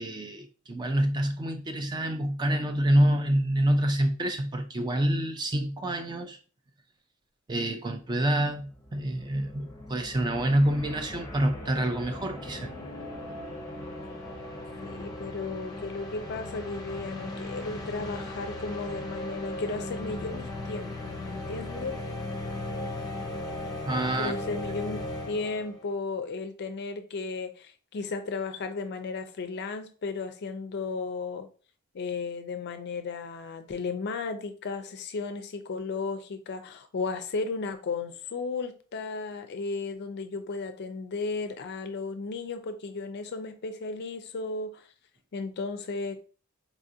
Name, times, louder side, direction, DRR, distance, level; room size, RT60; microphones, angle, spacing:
voice 1, 0.0-6.4 7.5-12.7 23.8-24.3, right 1 dB, 20° right, 0.3 m, -27 dB
sound 1, 8.6-25.8, left 1 dB, 15° left, 0.7 m, -38 dB
voice 2, 14.8-22.0 24.2-31.5 31.9-44.9 45.3-46.2, left 4 dB, 50° left, 0.4 m, -34 dB
4.1 x 2.4 x 2.7 m
head